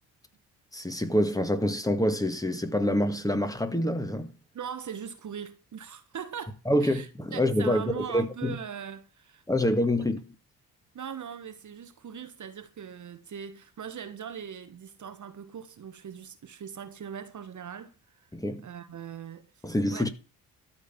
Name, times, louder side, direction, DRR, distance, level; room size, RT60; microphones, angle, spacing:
voice 1, 0.7-4.3 6.6-8.5 9.5-10.2 18.3-18.6 19.6-20.1, left 1 dB, 10° left, 1.8 m, -26 dB
voice 2, 4.5-9.4 10.9-18.3 18.6-19.6 19.9-20.1, right 8 dB, 40° right, 1.3 m, -40 dB
13.0 x 5.3 x 7.1 m
figure-of-eight pair, 45°, 45 cm